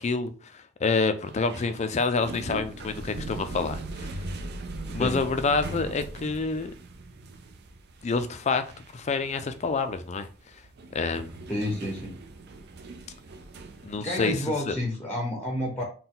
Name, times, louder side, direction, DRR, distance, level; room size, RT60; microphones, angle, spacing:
voice 1, 0.0-4.1 4.9-6.7 8.0-8.6 8.9-10.3 10.9-11.4 13.8-14.4 14.7-14.8, left 4 dB, 35° left, 0.4 m, -27 dB
sound 1, 1.3-14.0, right 2 dB, 55° right, 0.4 m, -40 dB
voice 2, 11.5-12.2 14.0-15.8, left 1 dB, 5° left, 0.7 m, -30 dB
4.1 x 2.2 x 3.8 m
head